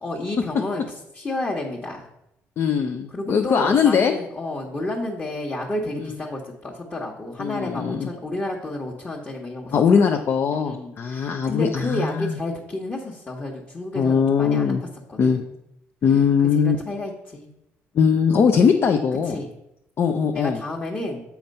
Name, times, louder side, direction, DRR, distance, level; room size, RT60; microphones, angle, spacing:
voice 1, 0.0-0.8 1.1-2.1 3.1-9.7 10.5-14.7 15.1-15.5 16.5-17.5 18.3-18.5 19.3-19.5 20.3-21.2, left 2 dB, 25° left, -3 dB, 1.3 m, -31 dB
voice 2, 2.6-4.1 6.0-6.2 7.4-8.1 9.7-12.4 13.9-14.8 15.2-15.4 16.0-16.8 17.9-19.4 20.0-20.6, left 6 dB, 50° left, 4 dB, 0.6 m, -20 dB
7.1 x 4.5 x 5.3 m, 0.82 s
cardioid pair, 90°, 5 cm